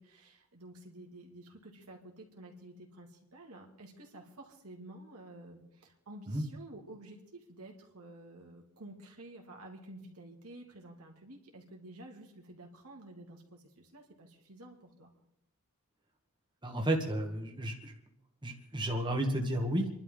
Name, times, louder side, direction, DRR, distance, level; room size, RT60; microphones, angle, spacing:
voice 1, 0.0-15.1, right 1 dB, 80° right, 1 dB, 2.7 m, -51 dB
voice 2, 16.6-17.9 18.4-19.9, right 1 dB, 20° right, 2 dB, 1.5 m, -32 dB
28.5 x 11.5 x 3.8 m, 0.81 s
head